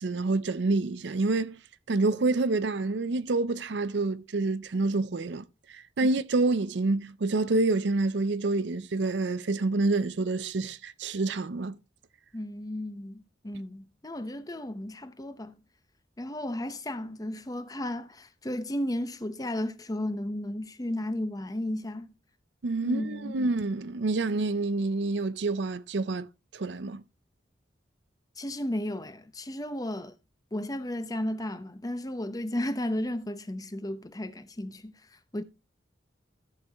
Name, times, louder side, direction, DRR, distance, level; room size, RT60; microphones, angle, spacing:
voice 1, 0.0-1.6 1.9-5.4 5.7-11.8 22.6-26.3 26.5-27.0, right 3 dB, 75° right, 0.6 m, -27 dB
voice 2, 12.3-15.5 16.2-22.1 22.8-23.4 28.4-30.1 30.5-34.9 35.3-35.4, left 1 dB, 20° left, 0.7 m, -34 dB
14.0 x 6.3 x 3.4 m
head